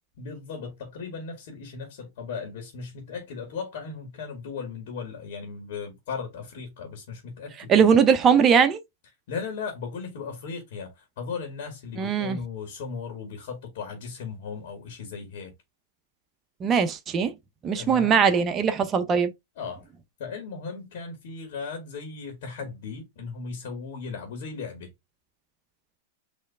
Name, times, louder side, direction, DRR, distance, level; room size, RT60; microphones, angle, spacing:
voice 1, 0.2-7.9 9.3-15.5 17.7-18.2 19.6-19.9 20.2-24.9, left 5 dB, 65° left, 2.1 m, -37 dB
voice 2, 7.7-8.8 12.0-12.4 16.6-17.3 17.6-19.3, right 6 dB, 25° right, 0.7 m, -20 dB
4.3 x 3.2 x 3.6 m
hypercardioid pair, 130°, 0 cm